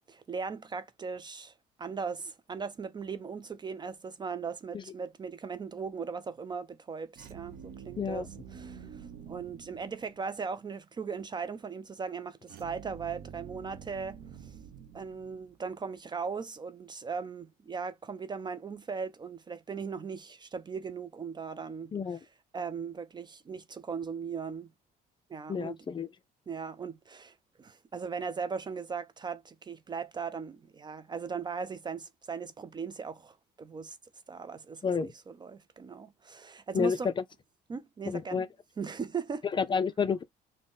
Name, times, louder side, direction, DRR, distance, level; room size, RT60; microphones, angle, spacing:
voice 1, 0.0-14.6 14.9-22.2 22.5-24.7 25.3-25.8 26.5-34.0 34.3-34.9 35.3-37.1 37.7-38.4 38.8-39.4, right 5 dB, 25° right, 0.4 m, -38 dB
sound 1, 7.1-10.5 12.5-15.7, right 7 dB, 65° right, 0.8 m, -48 dB
voice 2, 8.0-8.3 21.9-22.2 25.5-26.1 34.8-35.1 36.7-37.0 38.1-38.5 39.5-40.2, left 6 dB, 30° left, 0.5 m, -29 dB
3.8 x 2.2 x 3.5 m
cardioid pair, 110°, 17 cm